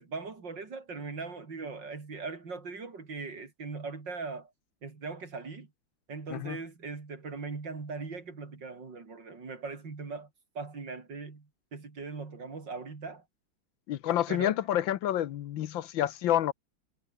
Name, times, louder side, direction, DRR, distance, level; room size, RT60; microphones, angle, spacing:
voice 1, 0.0-4.5 4.8-5.7 6.1-13.3 14.3-14.6, right 4 dB, 60° right, 4.1 m, -40 dB
voice 2, 13.9-16.5, left 11 dB, 75° left, 1.6 m, -28 dB
omnidirectional pair, 2.1 m